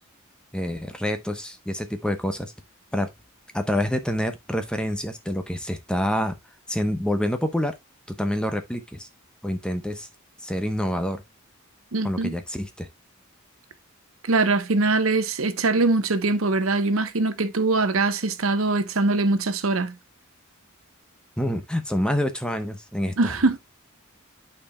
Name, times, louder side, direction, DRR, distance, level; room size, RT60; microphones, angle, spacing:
voice 1, 0.5-2.5 2.9-3.1 3.5-6.3 6.7-7.8 8.1-9.1 9.4-10.1 10.4-11.2 12.0-12.9 21.4-23.3, equal, 5° left, 0.9 m, -27 dB
voice 2, 11.9-12.4 14.3-19.9 23.2-23.6, right 3 dB, 75° right, 0.9 m, -22 dB
12.0 x 4.5 x 2.2 m
head